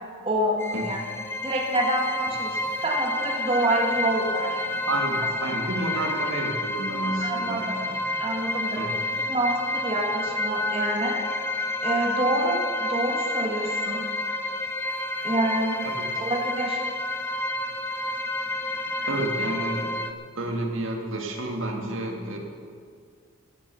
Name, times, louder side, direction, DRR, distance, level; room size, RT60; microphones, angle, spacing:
voice 1, 0.2-1.0 1.4-4.6 5.9-6.0 7.2-7.8 8.2-8.9 9.3-11.2 11.8-14.1 15.2-15.8 16.2-16.8, right 1 dB, 25° right, 0 dB, 1.6 m, -27 dB
sound 1, 0.6-20.1, left 2 dB, 10° left, 0.8 m, -29 dB
voice 2, 4.9-7.9 8.8-9.0 19.1-19.9 20.3-22.4, right 2 dB, 65° right, 2 dB, 2.1 m, -30 dB
16.5 x 9.3 x 6.9 m, 2.1 s
head